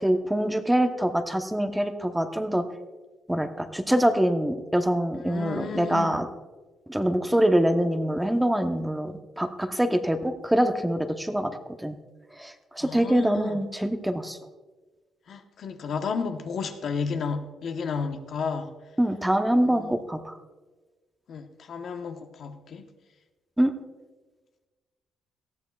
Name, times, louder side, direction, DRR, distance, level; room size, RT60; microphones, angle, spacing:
voice 1, 0.0-2.6 3.3-6.3 6.9-12.0 12.4-14.4 19.0-20.3 23.6-23.7, right 1 dB, 5° right, 7 dB, 0.9 m, -24 dB
voice 2, 5.3-6.2 12.8-13.6 15.3-18.7 19.7-19.9 21.3-22.8, left 5 dB, 60° left, 6 dB, 1.0 m, -32 dB
18.5 x 14.0 x 2.4 m, 1.3 s
cardioid pair, 90°, 0 cm